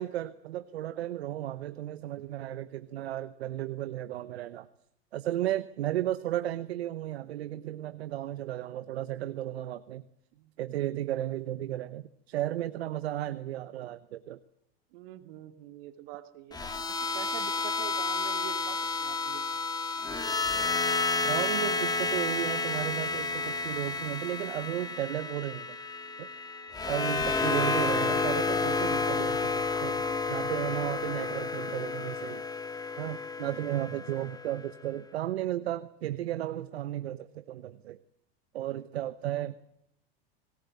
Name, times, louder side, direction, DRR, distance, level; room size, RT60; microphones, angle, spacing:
voice 1, 0.0-4.7 5.1-10.1 10.6-14.4 21.2-25.8 26.2-26.3 26.9-32.4 33.0-38.0 38.5-39.5, right 13 dB, 90° right, 14 dB, 0.9 m, -34 dB
voice 2, 14.9-16.6 16.9-19.4, right 13 dB, 65° right, 8 dB, 2.7 m, -45 dB
sound 1, 16.5-34.7, left 4 dB, 10° left, 2.0 m, -31 dB
20.5 x 19.0 x 9.1 m, 0.75 s
supercardioid pair, 120°, 31 cm